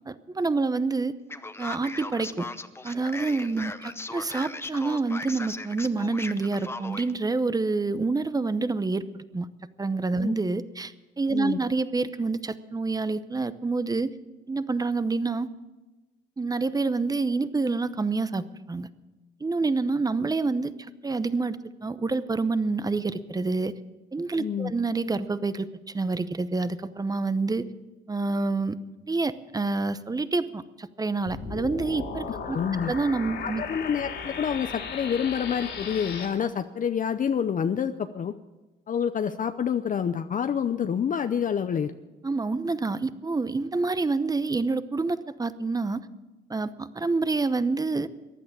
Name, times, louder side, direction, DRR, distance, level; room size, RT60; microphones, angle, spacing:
voice 1, 0.1-1.1 1.6-2.5 2.8-9.0 9.3-9.5 9.8-14.1 14.5-15.5 16.4-18.9 19.4-20.7 21.0-21.6 21.8-23.7 24.1-25.7 25.9-27.6 28.1-28.8 29.1-32.6 32.9-33.6 42.2-46.0 46.5-48.1, right 3 dB, 20° right, 14 dB, 0.8 m, -27 dB
Male speech man speaking, 1.3-7.1, left 2 dB, 10° left, 0.8 m, -37 dB
voice 2, 11.3-11.6 24.4-24.7 32.3-32.9 33.4-38.3 38.9-41.9, left 7 dB, 40° left, 10 dB, 0.6 m, -28 dB
sound 1, 31.3-36.3, left 5 dB, 75° left, 3.4 m, -36 dB
15.0 x 10.5 x 7.3 m, 1.1 s
cardioid pair, 90°, 20 cm